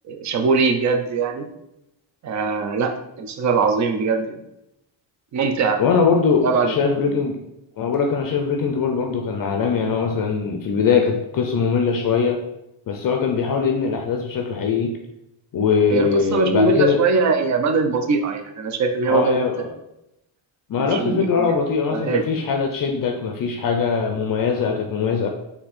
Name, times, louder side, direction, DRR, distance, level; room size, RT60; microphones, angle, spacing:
voice 1, 0.1-1.5 2.2-2.9 3.2-4.4 5.3-5.8 6.4-7.2 15.9-19.4 20.8-21.6 21.9-22.2, right 4 dB, 40° right, 6 dB, 0.5 m, -21 dB
voice 2, 5.8-7.4 7.8-12.4 12.9-14.9 15.5-17.0 19.1-19.7 20.7-25.3, left 5 dB, 45° left, 3 dB, 0.5 m, -21 dB
4.3 x 2.8 x 4.1 m, 0.87 s
cardioid pair, 115°, 48 cm